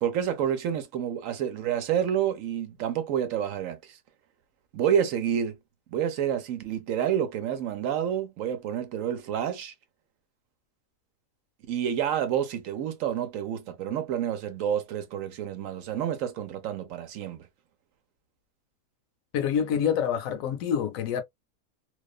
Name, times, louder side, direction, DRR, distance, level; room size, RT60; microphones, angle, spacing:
voice 1, 0.0-4.0 4.7-5.6 5.9-9.7 11.7-17.5, right 9 dB, 70° right, 1.0 m, -29 dB
voice 2, 19.3-21.2, left 8 dB, 75° left, 1.0 m, -26 dB
2.5 x 2.3 x 2.3 m
omnidirectional pair, 1.5 m